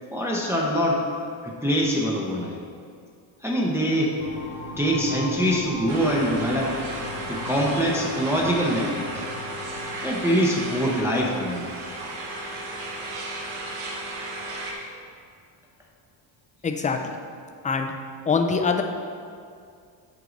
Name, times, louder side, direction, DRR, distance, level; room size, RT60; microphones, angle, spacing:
voice 1, 0.1-1.1 1.4-2.6 3.4-4.2 4.8-6.7 7.3-9.2 10.0-11.6, equal, 5° right, -3 dB, 0.7 m, -24 dB
sound 1, 4.2-14.7, left 2 dB, 85° left, 1.6 m, -40 dB
sound 2, 5.9-14.7, right 1 dB, 75° right, 1.3 m, -34 dB
voice 2, 16.6-17.2 17.6-17.9 18.3-18.8, left 5 dB, 20° left, 5 dB, 0.3 m, -23 dB
8.1 x 4.6 x 3.9 m, 2.3 s
cardioid pair, 120°, 50 cm